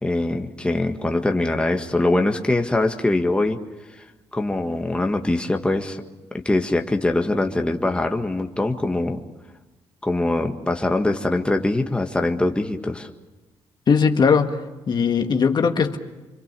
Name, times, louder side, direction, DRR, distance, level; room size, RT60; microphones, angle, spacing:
voice 1, 0.0-3.6 4.3-6.0 6.4-9.2 10.0-13.1, left 2 dB, 10° left, 4 dB, 1.7 m, -22 dB
voice 2, 13.9-16.0, left 6 dB, 45° left, 5 dB, 1.9 m, -19 dB
26.5 x 24.0 x 6.9 m, 1.1 s
cardioid pair, 80°, 10 cm